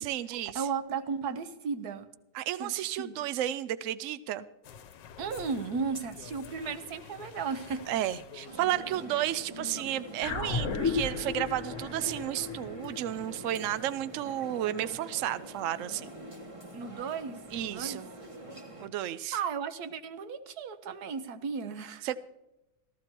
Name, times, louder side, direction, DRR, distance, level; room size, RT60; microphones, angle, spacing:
voice 1, 0.0-0.7 2.3-4.5 7.9-16.1 17.5-18.1 18.8-19.4 22.0-22.2, right 12 dB, 85° right, 14 dB, 0.6 m, -32 dB
voice 2, 0.5-2.1 2.6-3.2 5.2-7.9 9.2-9.3 9.8-9.9 16.7-18.0 19.3-22.1, right 5 dB, 60° right, 11 dB, 1.3 m, -35 dB
sound 1, 4.6-9.7, left 8 dB, 75° left, 1.4 m, -49 dB
sound 2, 8.4-18.9, right 1 dB, 20° right, 1.1 m, -45 dB
sound 3, 10.2-14.8, left 5 dB, 45° left, 1.4 m, -35 dB
15.0 x 13.0 x 4.4 m, 0.95 s
omnidirectional pair, 2.0 m